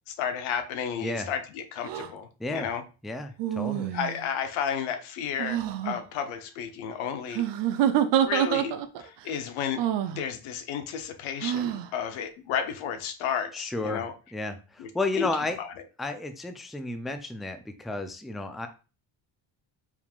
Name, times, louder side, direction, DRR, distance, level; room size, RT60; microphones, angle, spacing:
voice 1, 0.1-2.8 3.9-7.5 8.2-9.9 10.1-14.1 14.8-14.9 15.1-15.3 15.6-15.7, left 8 dB, 85° left, 9 dB, 0.8 m, -32 dB
sound 1, 1.8-2.1 3.4-4.3 5.4-6.0 7.3-9.1 9.8-10.2 11.4-11.9, right 10 dB, 60° right, 0.6 m, -27 dB
voice 2, 3.0-3.9 13.5-14.0 14.3-15.6 16.0-18.7, left 2 dB, ahead, 8 dB, 0.4 m, -32 dB
4.6 x 3.6 x 2.4 m, 0.32 s
cardioid pair, 80°, 48 cm